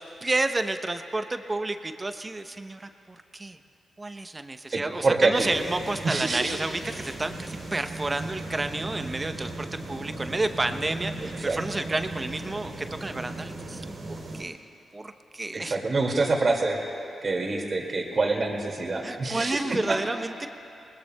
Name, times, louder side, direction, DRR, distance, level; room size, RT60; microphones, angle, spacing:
voice 1, 0.0-3.6 4.0-14.6 14.9-15.8 19.0-20.5, right 2 dB, 30° right, 8 dB, 0.8 m, -31 dB
voice 2, 4.7-5.5 6.0-6.5 11.2-11.6 15.5-16.8 17.2-19.6 19.9-20.0, right 3 dB, 50° right, 1 dB, 2.2 m, -26 dB
sound 1, 5.3-14.4, right 2 dB, 65° right, 3.0 m, -37 dB
21.5 x 20.0 x 2.3 m, 2.6 s
supercardioid pair, 50°, 0 cm